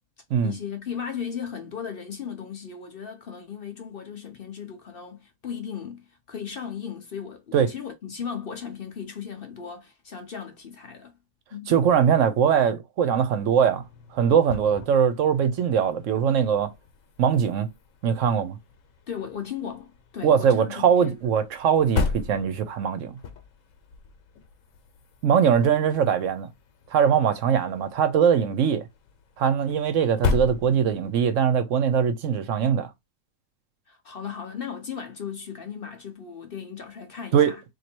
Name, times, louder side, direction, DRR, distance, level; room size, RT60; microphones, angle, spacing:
voice 1, 0.4-11.2 11.5-11.8 19.1-21.2 33.9-37.6, left 7 dB, 50° left, 0.8 m, -36 dB
voice 2, 11.7-13.8 14.1-16.7 17.2-17.7 18.0-18.6 20.2-23.1 25.2-26.5 26.9-28.9 29.4-32.9 37.3-37.5, right 7 dB, 70° right, 1.0 m, -21 dB
sound 1, 13.2-31.3, left 4 dB, 70° left, 1.2 m, -36 dB
3.0 x 2.6 x 4.4 m
omnidirectional pair, 1.4 m